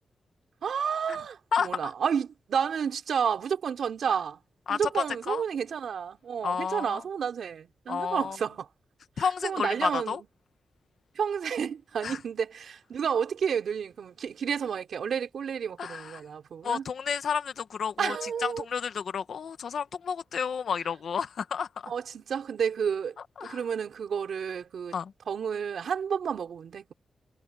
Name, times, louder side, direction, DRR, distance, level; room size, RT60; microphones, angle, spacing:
voice 1, 0.6-4.4 4.7-8.7 9.2-10.2 11.2-16.8 18.0-18.6 21.9-23.1 23.4-24.9 25.3-26.9, right 7 dB, 80° right, 3.8 m, -31 dB
voice 2, 1.5-1.9 4.1-4.2 4.7-5.4 6.4-7.0 7.9-8.4 9.2-10.2 12.0-12.2 15.8-16.2 16.6-21.9 23.4-23.6 24.9-25.1, left 6 dB, 75° left, 1.7 m, -31 dB
wide cardioid pair, 120°, 0 cm